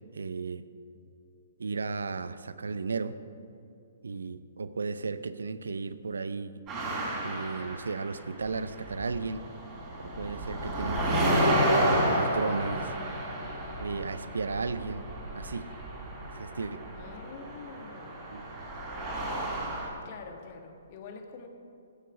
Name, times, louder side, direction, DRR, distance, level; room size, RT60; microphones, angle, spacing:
voice 1, 0.1-0.7 1.6-3.2 4.0-6.5 7.2-9.4 10.0-11.5 11.8-13.0 13.8-15.0 15.3-15.8 16.2-16.8 18.3-18.4, right 4 dB, 80° right, 13 dB, 0.6 m, -34 dB
sound 1, 6.7-8.5 8.8-19.9, right 1 dB, 25° right, 3.6 m, -31 dB
voice 2, 16.9-18.2 19.0-19.3 20.0-21.5, left 5 dB, 45° left, 4 dB, 1.6 m, -46 dB
14.5 x 8.3 x 6.0 m, 2.5 s
hypercardioid pair, 130°, 0 cm